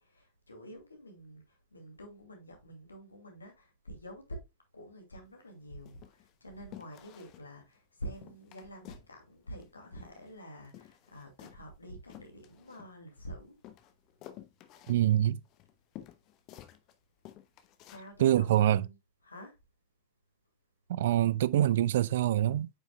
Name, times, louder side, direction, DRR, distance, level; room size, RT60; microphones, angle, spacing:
voice 1, 0.0-4.4 4.7-13.6 17.9-19.0 19.2-19.6, equal, 80° left, 2.3 m, -48 dB
sound 1, 5.2-5.5 5.9-6.3 6.7-7.5 7.8-7.9 8.1-9.1 9.4-10.4 10.6-13.2 13.6-16.9 17.2-18.1 18.5-18.6, left 13 dB, 40° left, 0.9 m, -52 dB
voice 2, 14.9-15.4 18.2-18.9 20.9-22.7, right 12 dB, 55° right, 0.4 m, -25 dB
8.6 x 6.0 x 2.2 m
figure-of-eight pair, 90°, 0 cm